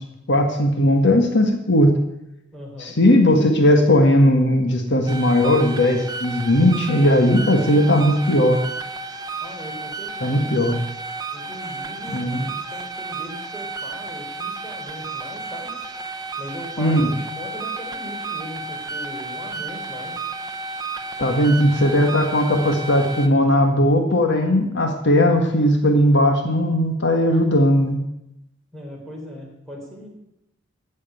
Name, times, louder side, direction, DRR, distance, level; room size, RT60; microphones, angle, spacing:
voice 1, 0.3-1.9 2.8-8.6 10.2-10.8 12.1-12.5 16.8-17.1 21.2-28.0, left 1 dB, 60° left, 4 dB, 1.6 m, -17 dB
voice 2, 2.5-3.0 9.4-10.5 11.3-12.3 12.7-15.8 16.4-20.2 28.7-30.1, equal, ahead, -2 dB, 4.1 m, -38 dB
sound 1, 5.1-23.3, right 3 dB, 20° right, 1.0 m, -32 dB
15.0 x 6.4 x 9.2 m, 0.86 s
head